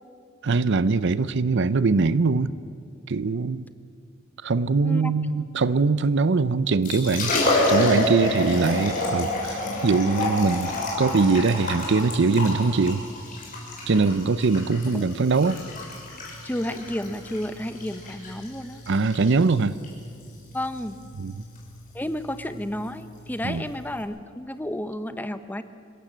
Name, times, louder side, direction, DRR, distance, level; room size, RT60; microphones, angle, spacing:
voice 1, 0.4-2.5 3.1-3.7 4.4-7.3 7.7-10.7 11.0-13.0 13.9-15.6 18.9-19.8 21.2-21.3 23.4-23.6, right 4 dB, 60° right, 16 dB, 0.6 m, -22 dB
voice 2, 4.8-5.1 14.9-15.1 16.4-18.8 20.5-21.0 21.9-25.6, left 1 dB, 10° left, 10 dB, 0.8 m, -31 dB
Liquid, 6.6-24.0, left 1 dB, 45° left, 6.0 m, -29 dB
26.0 x 16.0 x 7.5 m, 2.3 s
head